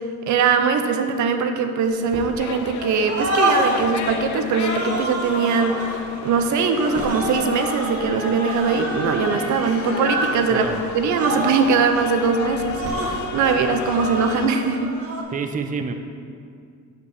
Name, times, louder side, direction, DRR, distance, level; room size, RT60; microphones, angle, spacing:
voice 1, 0.3-14.9, right 5 dB, 70° right, 7 dB, 0.7 m, -21 dB
sound 1, 2.1-2.7 3.0-3.9 4.5-6.0 6.8-10.4 10.6-10.8 11.0-11.8 12.6-13.2 13.8-15.2, right 1 dB, 50° right, 1.3 m, -28 dB
sound 2, 2.4-14.5, left 6 dB, 70° left, 0.6 m, -32 dB
voice 2, 10.5-10.8 15.3-15.9, right 5 dB, 25° right, 7 dB, 0.5 m, -27 dB
5.3 x 5.1 x 6.5 m, 2.3 s
cardioid pair, 90°, 30 cm